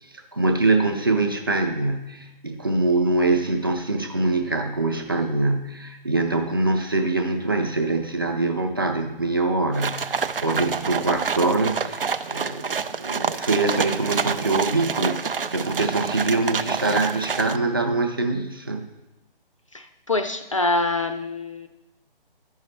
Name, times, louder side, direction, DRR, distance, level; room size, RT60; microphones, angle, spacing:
voice 1, 0.1-18.9, right 3 dB, 25° right, 4 dB, 0.5 m, -24 dB
sound 1, 9.7-17.6, right 5 dB, 70° right, 0.5 m, -27 dB
voice 2, 19.7-21.7, left 2 dB, 35° left, 7 dB, 0.5 m, -25 dB
13.0 x 5.6 x 3.1 m, 0.99 s
figure-of-eight pair, 145°, 29 cm